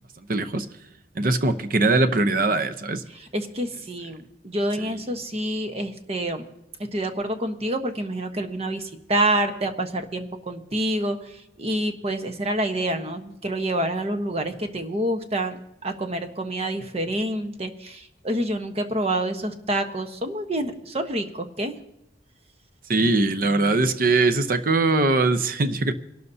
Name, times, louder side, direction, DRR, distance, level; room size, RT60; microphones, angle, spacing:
voice 1, 0.3-0.7 1.2-3.0 22.9-25.9, right 3 dB, 50° right, 0.8 m, -21 dB
voice 2, 3.1-6.4 6.9-21.7, right 1 dB, 35° right, 1.1 m, -27 dB
26.0 x 12.5 x 2.8 m
head